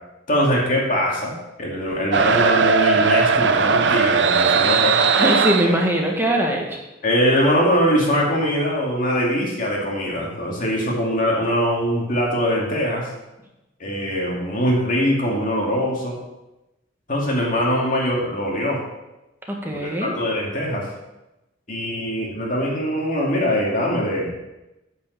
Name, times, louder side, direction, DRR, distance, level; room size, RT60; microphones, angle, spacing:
voice 1, 0.3-5.0 7.0-13.1 13.8-16.2 17.1-18.8 19.8-20.9 21.7-24.3, equal, 45° left, -2 dB, 2.5 m, -22 dB
sound 1, 2.1-5.8, right 5 dB, 65° right, 0.6 m, -18 dB
voice 2, 5.2-6.8 19.5-20.2, right 1 dB, 10° right, 0 dB, 1.5 m, -21 dB
9.5 x 5.5 x 6.8 m, 0.98 s
head